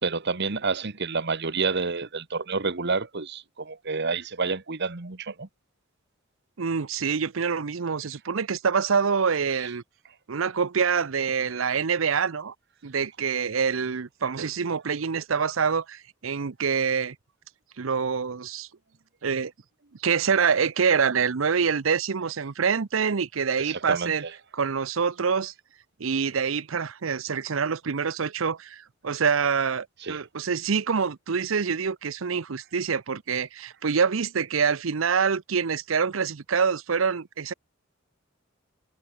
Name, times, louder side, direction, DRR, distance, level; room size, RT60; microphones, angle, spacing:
voice 1, 0.0-5.5 23.6-24.3 30.0-30.2, right 4 dB, 55° right, 1.5 m, -29 dB
voice 2, 6.6-9.8 10.3-12.5 12.8-17.2 17.8-18.7 19.2-19.5 20.0-24.2 24.5-25.5 26.0-37.5, right 6 dB, 85° right, 0.7 m, -26 dB
head